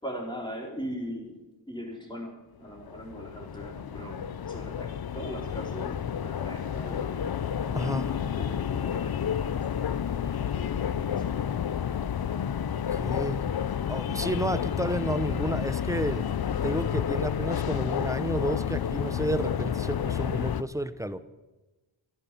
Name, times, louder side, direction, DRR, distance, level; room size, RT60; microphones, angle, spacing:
voice 1, 0.0-7.3 7.7-11.5, equal, 10° left, -1 dB, 4.3 m, -40 dB
sound 1, 2.7-20.6, left 8 dB, 50° left, 0.6 m, -30 dB
voice 2, 7.7-8.2 12.7-13.5 13.9-16.2 16.6-21.2, right 1 dB, 5° right, 12 dB, 0.8 m, -31 dB
14.5 x 11.0 x 7.6 m, 1.1 s
wide cardioid pair, 90°, 47 cm